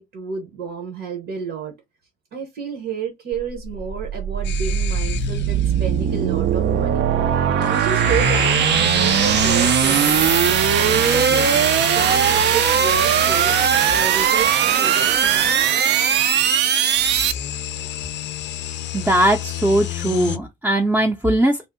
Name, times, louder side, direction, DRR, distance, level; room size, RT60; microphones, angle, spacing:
voice 1, 0.0-1.7 2.3-7.1 7.5-11.5 11.9-15.6, right 6 dB, 75° right, 1.0 m, -31 dB
sound 1, 3.3-17.3, right 8 dB, 60° right, 0.4 m, -19 dB
sound 2, 4.4-5.7 7.6-14.3 16.8-20.4, left 11 dB, 65° left, 0.4 m, -30 dB
voice 2, 18.9-21.7, right 1 dB, 10° right, 0.5 m, -19 dB
2.7 x 2.0 x 3.6 m
cardioid pair, 90°, 20 cm